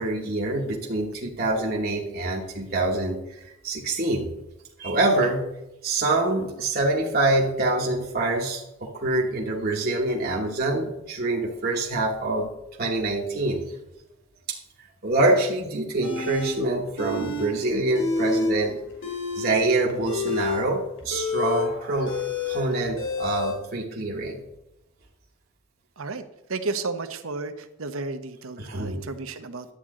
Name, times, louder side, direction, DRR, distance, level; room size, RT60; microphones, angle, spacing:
voice 1, 0.0-4.3 4.8-5.5 5.8-12.5 12.8-13.8 14.5-18.8 19.3-24.4 28.6-29.0, right 2 dB, 45° right, -3 dB, 1.2 m, -25 dB
sound 1, 16.0-16.5 17.0-17.5 17.8-18.5 18.9-23.5, left 4 dB, 60° left, 2.7 m, -28 dB
voice 2, 26.5-29.7, right 3 dB, 75° right, 9 dB, 1.0 m, -32 dB
11.5 x 8.7 x 3.8 m, 0.93 s
head